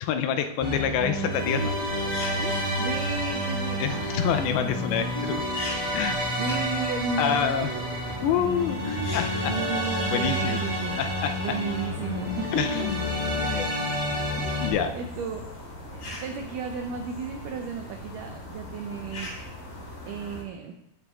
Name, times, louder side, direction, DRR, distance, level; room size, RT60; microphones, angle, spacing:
voice 1, 0.0-1.7 3.8-5.4 5.9-6.2 7.2-7.7 8.2-9.5 10.1-10.6 11.0-11.6 12.5-13.1 13.4-13.7 14.6-14.9, left 8 dB, 80° left, 8 dB, 2.3 m, -27 dB
sound 1, 0.6-14.7, equal, 10° left, 2.3 m, -29 dB
sound 2, 1.3-20.4, left 1 dB, 60° left, 3.5 m, -40 dB
voice 2, 2.4-4.1 6.4-8.1 9.4-11.0 11.4-12.9 14.4-15.4 15.9-19.3 20.1-20.7, right 6 dB, 85° right, 4 dB, 1.8 m, -34 dB
15.0 x 6.8 x 2.4 m, 0.83 s
omnidirectional pair, 4.5 m